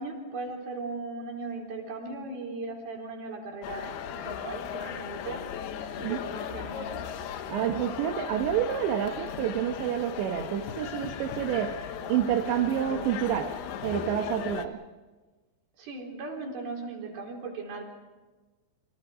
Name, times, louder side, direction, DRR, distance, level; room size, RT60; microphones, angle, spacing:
voice 1, 0.0-5.5 6.0-7.0 15.8-17.8, right 3 dB, 55° right, 1 dB, 5.8 m, -38 dB
sound 1, 3.6-14.7, left 8 dB, 70° left, 2.9 m, -37 dB
voice 2, 7.5-11.8 12.1-13.6 13.8-14.8, right 10 dB, 80° right, 3 dB, 3.5 m, -28 dB
29.5 x 25.5 x 5.0 m, 1.3 s
omnidirectional pair, 5.1 m